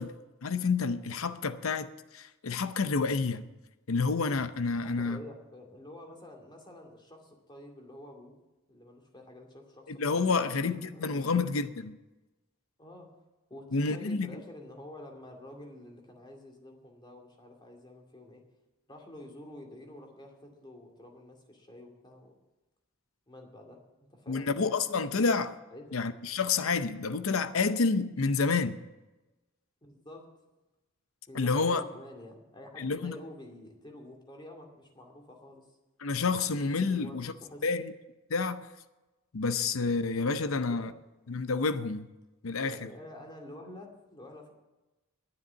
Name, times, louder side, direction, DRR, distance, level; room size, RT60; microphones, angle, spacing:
voice 1, 0.0-3.5 3.9-5.2 9.9-12.0 13.7-14.3 24.3-25.5 25.9-28.8 31.3-31.8 32.8-33.2 36.0-37.3 37.6-37.9 38.3-38.6 39.3-40.9 41.3-42.1 42.4-42.8, left 4 dB, 70° left, 0.7 m, -29 dB
voice 2, 4.8-8.3 8.7-11.3 12.8-13.1 13.5-18.4 18.9-22.3 23.3-24.5 25.7-26.0 29.8-30.3 31.3-35.6 36.9-37.6 40.5-40.8 42.6-44.5, left 1 dB, 20° left, 2.4 m, -48 dB
10.5 x 9.5 x 8.4 m
head